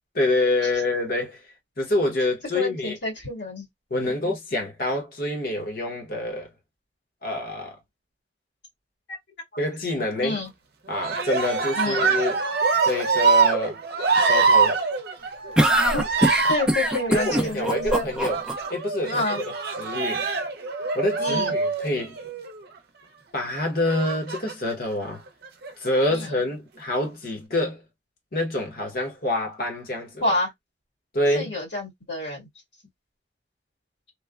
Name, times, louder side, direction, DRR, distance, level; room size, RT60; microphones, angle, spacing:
voice 1, 0.1-1.4 1.8-3.0 3.9-6.5 7.2-7.8 9.6-10.4 10.9-12.4 12.8-13.8 14.2-14.8 17.1-18.4 18.7-19.4 19.8-20.3 20.9-22.1 23.3-25.2 25.8-27.8 28.3-30.2 31.1-31.5, left 1 dB, 55° left, 1.0 m, -26 dB
voice 2, 2.5-3.7 9.1-9.2 10.2-10.5 11.8-12.1 15.9-16.0 16.5-18.1 19.0-19.4 21.2-21.6 26.1-26.3 30.2-30.5 31.3-32.5, left 2 dB, 75° left, 1.9 m, -28 dB
Cheering, 10.9-22.6 23.8-24.7 25.4-26.1, right 4 dB, 60° right, 0.6 m, -24 dB
sound 1, 15.6-18.5, right 1 dB, 5° right, 0.4 m, -21 dB
3.1 x 2.1 x 2.3 m
head